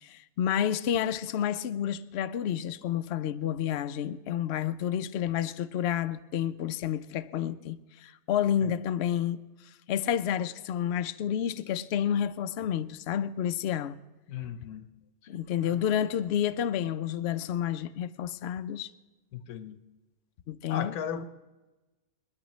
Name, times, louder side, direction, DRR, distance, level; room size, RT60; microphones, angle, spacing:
voice 1, 0.0-9.4 9.9-14.0 15.3-18.9 20.5-20.9, left 9 dB, 65° left, 0.7 m, -30 dB
voice 2, 14.3-14.9 15.6-15.8 19.3-19.8 20.7-21.2, left 8 dB, 85° left, 1.3 m, -36 dB
29.0 x 9.8 x 3.1 m
omnidirectional pair, 1.5 m